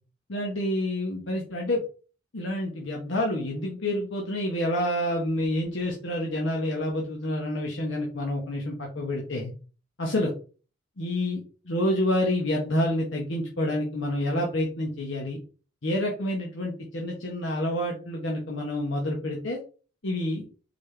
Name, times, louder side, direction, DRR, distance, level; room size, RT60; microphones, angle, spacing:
voice 1, 0.3-1.8 2.3-9.5 10.0-10.3 11.0-15.4 15.8-19.6 20.0-20.4, left 1 dB, 80° left, -1 dB, 1.0 m, -28 dB
4.1 x 3.4 x 3.3 m, 0.36 s
head